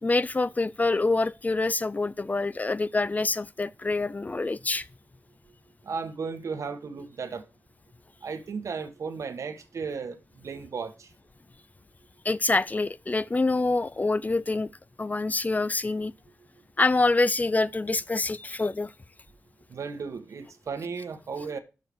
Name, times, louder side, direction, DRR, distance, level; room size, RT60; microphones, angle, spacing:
voice 1, 0.0-4.9 12.2-14.7 15.0-16.1 16.8-18.9, left 3 dB, 30° left, 0.4 m, -26 dB
voice 2, 5.8-7.4 8.2-11.1 19.7-21.6, right 5 dB, 85° right, 1.2 m, -35 dB
6.5 x 4.8 x 6.9 m
wide cardioid pair, 70°, 5 cm